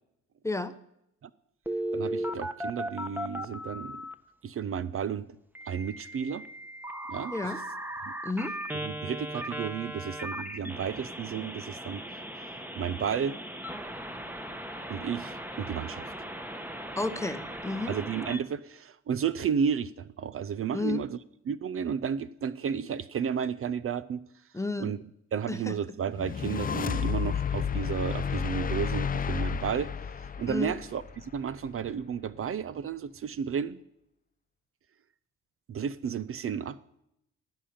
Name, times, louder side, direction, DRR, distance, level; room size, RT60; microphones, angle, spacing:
voice 1, 0.4-0.8 7.3-7.6 8.2-8.6 17.0-18.0 20.7-21.0 24.5-25.0 25.5-25.8 30.5-30.8, left 2 dB, 10° left, 11 dB, 0.8 m, -32 dB
Telephone, 1.7-4.1 5.6-18.4, equal, 5° right, 1.1 m, -37 dB
voice 2, 1.9-4.0 4.4-5.3 5.7-6.4 7.1-7.3 8.8-12.0 12.4-12.5 12.8-13.4 14.9-16.1 17.9-21.2 21.5-24.2 24.8-25.0 25.3-29.9 30.2-33.8 35.7-36.8, right 7 dB, 45° right, 16 dB, 0.6 m, -32 dB
sound 1, 26.1-31.5, left 7 dB, 30° left, 0.5 m, -31 dB
16.5 x 5.8 x 8.6 m, 0.79 s
cardioid pair, 90°, 30 cm